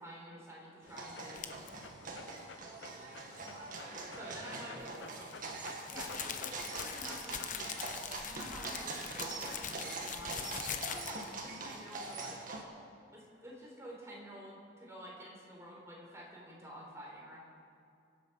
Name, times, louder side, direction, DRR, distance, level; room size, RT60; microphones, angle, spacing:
voice 1, 0.0-1.6 4.1-4.8 5.8-8.0 8.2-12.4 13.1-17.4, equal, 15° right, -3 dB, 4.0 m, -49 dB
sound 1, 0.8-12.6, right 3 dB, 50° right, 1.9 m, -43 dB
Dog, 0.9-7.6, left 4 dB, 80° left, 0.8 m, -52 dB
sound 2, 1.4-1.7 4.8-11.4, left 8 dB, 45° left, 0.9 m, -42 dB
voice 2, 2.8-3.6 4.0-5.2, left 1 dB, 5° left, -5 dB, 3.1 m, -59 dB
25.0 x 8.3 x 5.8 m, 2.5 s
head